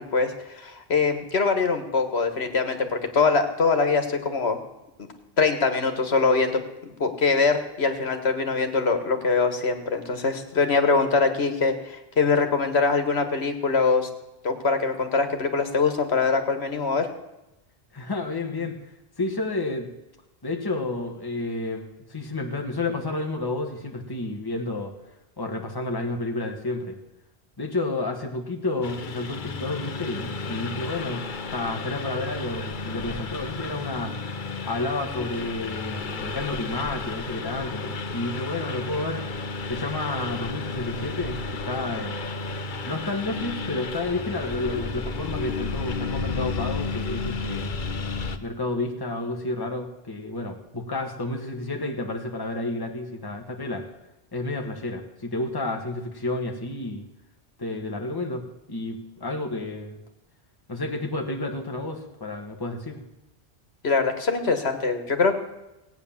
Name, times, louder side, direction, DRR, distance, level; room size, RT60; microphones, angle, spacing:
voice 1, 0.0-4.6 5.4-14.1 14.4-17.1 63.8-65.3, left 4 dB, 75° left, 7 dB, 1.8 m, -23 dB
voice 2, 17.9-18.8 19.2-19.9 20.4-24.9 25.4-27.0 27.6-34.1 34.6-39.2 39.7-42.2 42.8-47.7 48.4-53.9 54.3-57.1 57.6-60.0 60.7-63.0, left 2 dB, 20° left, 3 dB, 1.5 m, -30 dB
Engine, 28.8-48.4, left 4 dB, 50° left, 1.0 m, -32 dB
16.5 x 9.2 x 7.2 m, 0.95 s
omnidirectional pair, 1.1 m